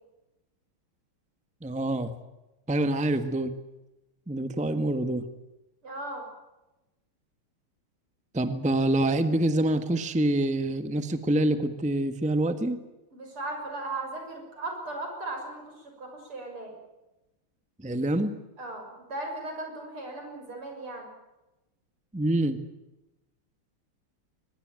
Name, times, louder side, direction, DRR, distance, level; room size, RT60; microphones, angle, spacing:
voice 1, 1.6-2.1 2.7-3.6 4.3-5.2 8.3-12.8 17.8-18.4 22.1-22.6, right 1 dB, 5° right, 10 dB, 1.2 m, -26 dB
voice 2, 5.8-6.3 13.1-16.7 18.6-21.1, right 2 dB, 75° right, 3 dB, 7.5 m, -37 dB
23.0 x 21.5 x 9.1 m, 1.0 s
omnidirectional pair, 2.4 m